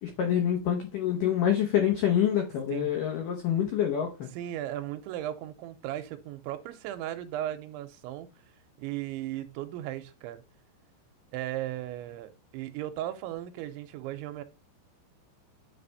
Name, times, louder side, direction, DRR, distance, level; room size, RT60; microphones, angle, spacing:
voice 1, 0.0-4.3, left 10 dB, 90° left, 1.8 m, -26 dB
voice 2, 2.7-3.0 4.3-8.3 8.8-10.4 11.3-14.4, right 13 dB, 90° right, 3.0 m, -36 dB
9.8 x 3.5 x 4.0 m
omnidirectional pair, 5.3 m